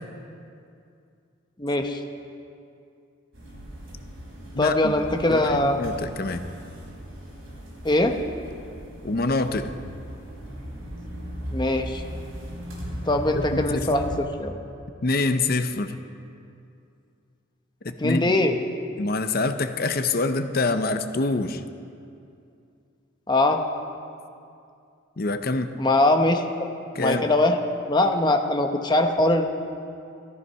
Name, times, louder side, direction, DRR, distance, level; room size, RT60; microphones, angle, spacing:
voice 1, 1.6-2.0 4.6-5.8 7.8-8.2 11.5-12.0 13.1-14.5 18.0-18.6 23.3-23.6 25.8-26.4 27.0-27.6 27.9-29.5, left 2 dB, 20° left, 4 dB, 0.9 m, -21 dB
sound 1, 3.3-14.2, equal, 65° right, 4.9 m, -37 dB
voice 2, 4.5-4.9 5.3-6.4 9.0-9.7 13.5-13.9 15.0-16.0 17.8-18.3 19.0-21.6 25.2-25.7 26.9-27.3, left 3 dB, 45° left, 9 dB, 0.7 m, -25 dB
15.5 x 14.0 x 5.6 m, 2.5 s
head